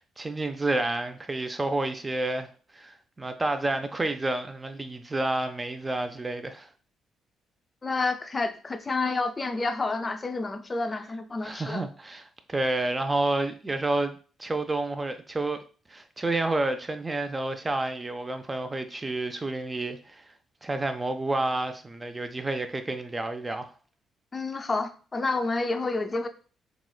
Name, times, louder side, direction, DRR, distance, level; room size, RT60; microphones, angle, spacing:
voice 1, 0.0-2.5 2.7-6.7 11.4-12.2 12.5-15.6 15.9-20.2 20.6-23.7, right 2 dB, 25° right, 0.5 m, -29 dB
voice 2, 7.8-11.8 24.3-26.3, left 3 dB, 30° left, 0.4 m, -29 dB
3.8 x 3.0 x 2.3 m
figure-of-eight pair, 40°, 0 cm